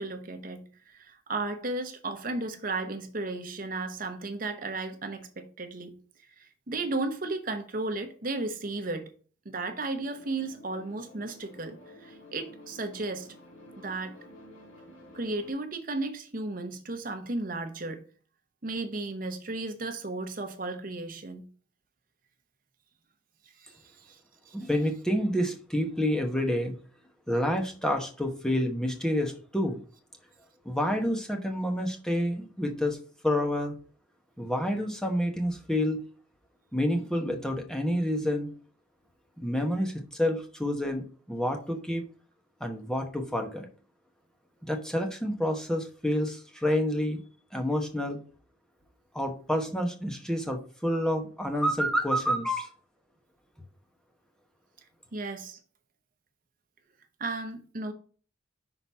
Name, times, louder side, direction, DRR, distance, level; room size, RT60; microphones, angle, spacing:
voice 1, 0.0-5.9 6.4-9.1 9.4-13.3 13.8-14.1 15.1-18.1 18.6-21.4 23.6-24.2 24.5-24.6 55.1-55.6 57.2-57.9, right 2 dB, 45° right, 0.9 m, -34 dB
sound 1, 9.8-15.5, left 1 dB, 85° left, 1.9 m, -51 dB
voice 2, 24.5-26.8 27.3-29.8 30.6-33.0 33.2-33.8 34.4-36.0 36.7-38.5 39.4-42.0 42.6-43.7 44.6-47.2 47.5-48.2 49.1-52.7, equal, 5° left, 1.0 m, -28 dB
5.9 x 4.0 x 5.5 m
head